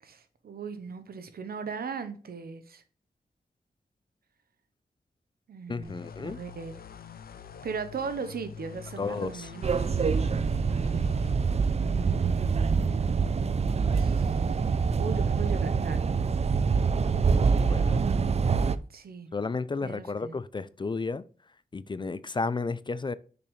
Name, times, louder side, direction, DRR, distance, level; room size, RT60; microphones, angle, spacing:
voice 1, 0.0-2.8 5.5-6.8 7.6-10.1 11.8-13.3 13.9-14.4 15.0-16.0 18.9-19.3 19.8-20.4, right 5 dB, 75° right, 0.9 m, -38 dB
voice 2, 5.7-6.4 9.0-9.5 17.6-18.0 19.3-21.2 21.7-23.1, left 4 dB, 30° left, 0.4 m, -32 dB
sound 1, 5.8-11.3, left 7 dB, 70° left, 0.7 m, -45 dB
sound 2, 9.6-18.8, right 5 dB, 40° right, 0.5 m, -25 dB
6.8 x 5.2 x 3.2 m
cardioid pair, 55°, 16 cm